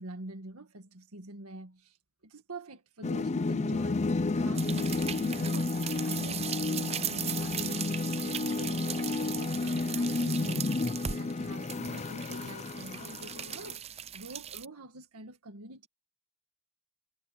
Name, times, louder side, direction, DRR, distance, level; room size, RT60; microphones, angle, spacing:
voice 1, 0.0-2.0 2.2-5.7 6.0-15.9, right 1 dB, 80° right, 1.8 m, -46 dB
sound 1, 3.0-13.7, left 3 dB, 30° left, 0.5 m, -31 dB
sound 2, 4.6-14.7, right 9 dB, 30° right, 0.6 m, -39 dB
head